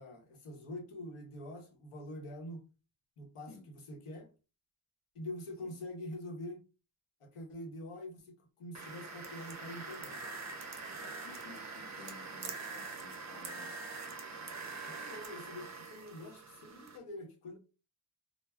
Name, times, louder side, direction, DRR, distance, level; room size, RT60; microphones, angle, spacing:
voice 1, 0.0-2.6 3.2-4.3 5.1-6.6 7.2-10.2 14.8-17.6, left 1 dB, 85° left, 0.9 m, -45 dB
sound 1, 8.7-17.0, right 3 dB, 35° right, 0.5 m, -44 dB
voice 2, 11.0-13.7, left 3 dB, 55° left, 0.7 m, -55 dB
2.2 x 2.1 x 3.3 m
wide cardioid pair, 110°, 49 cm